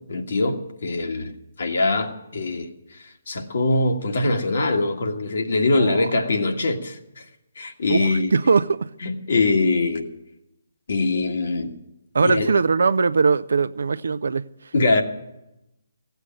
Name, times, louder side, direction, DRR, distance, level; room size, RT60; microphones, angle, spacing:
voice 1, 0.1-2.7 3.3-7.2 7.6-8.3 9.0-10.1 10.9-11.7 12.2-12.5 14.7-15.0, left 2 dB, 65° left, 1.6 m, -23 dB
voice 2, 5.7-6.1 7.9-8.9 12.1-14.7, right 4 dB, 75° right, 0.5 m, -21 dB
16.5 x 8.1 x 8.9 m
hypercardioid pair, 145°, 0 cm